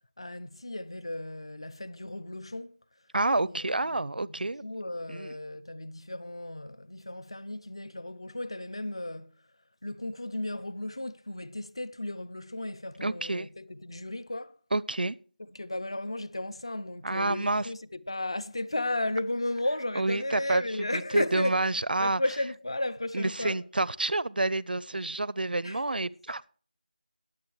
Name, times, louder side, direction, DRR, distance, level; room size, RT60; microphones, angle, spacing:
voice 1, 0.2-2.8 3.4-4.3 4.6-9.3 9.8-14.6 15.5-21.6 22.0-23.6 25.6-25.8, left 1 dB, 35° left, 0.5 m, -34 dB
voice 2, 3.1-4.6 5.1-5.3 13.0-13.5 14.7-15.2 17.0-17.7 20.0-20.6 20.9-22.2 23.1-26.5, right 2 dB, 85° right, 0.6 m, -28 dB
20.5 x 7.6 x 3.2 m
figure-of-eight pair, 180°, 5 cm